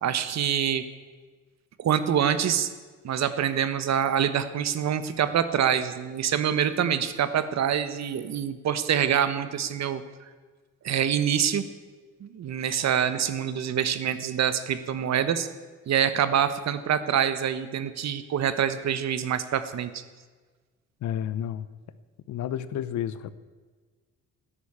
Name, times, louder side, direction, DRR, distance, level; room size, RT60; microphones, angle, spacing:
voice 1, 0.0-0.8 1.8-2.7 3.0-10.0 10.8-11.6 12.2-15.5 15.9-20.0, right 9 dB, 60° right, 12 dB, 1.2 m, -25 dB
voice 2, 21.0-21.7 22.3-23.3, left 10 dB, 70° left, 15 dB, 0.9 m, -31 dB
13.0 x 10.5 x 8.7 m, 1.4 s
cardioid pair, 90°, 30 cm